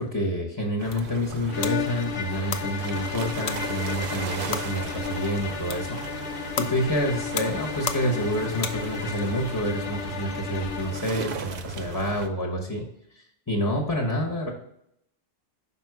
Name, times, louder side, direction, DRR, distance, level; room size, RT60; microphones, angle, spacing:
voice 1, 0.0-12.9 13.1-14.5, equal, 20° left, 1 dB, 0.8 m, -28 dB
sound 1, 0.6-9.2, left 6 dB, 50° left, 0.5 m, -37 dB
sound 2, 0.8-12.3, right 5 dB, 55° right, 0.7 m, -37 dB
sound 3, 1.5-11.1, left 8 dB, 75° left, 0.9 m, -34 dB
5.8 x 4.5 x 4.7 m, 0.75 s
omnidirectional pair, 1.2 m